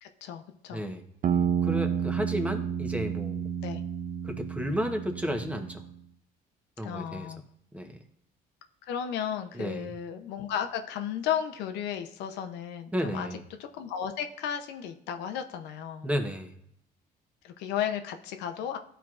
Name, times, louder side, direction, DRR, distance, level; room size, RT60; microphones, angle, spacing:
voice 1, 0.0-0.9 3.6-3.8 6.8-7.4 8.8-16.1 17.4-18.8, left 9 dB, 90° left, 6 dB, 0.7 m, -34 dB
voice 2, 0.7-1.0 1.6-3.5 4.2-5.8 6.8-7.3 7.7-7.9 9.5-9.9 12.9-13.4 16.0-16.5, equal, 10° right, 5 dB, 0.9 m, -32 dB
sound 1, 1.2-5.9, right 8 dB, 50° right, 0.5 m, -30 dB
12.5 x 4.5 x 2.4 m, 0.73 s
cardioid pair, 110°, 17 cm